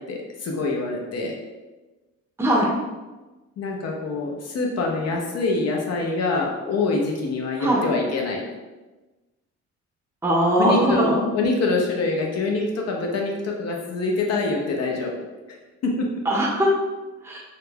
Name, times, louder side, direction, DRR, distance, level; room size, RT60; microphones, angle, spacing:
voice 1, 0.1-1.4 3.6-8.4 10.6-15.1 15.8-16.1, left 3 dB, 55° left, 0 dB, 0.5 m, -25 dB
voice 2, 2.4-2.7 7.6-7.8 10.2-11.2 16.2-16.7 17.2-17.4, right 1 dB, 10° right, -2 dB, 0.6 m, -20 dB
2.4 x 2.2 x 3.2 m, 1.2 s
cardioid pair, 90°, 30 cm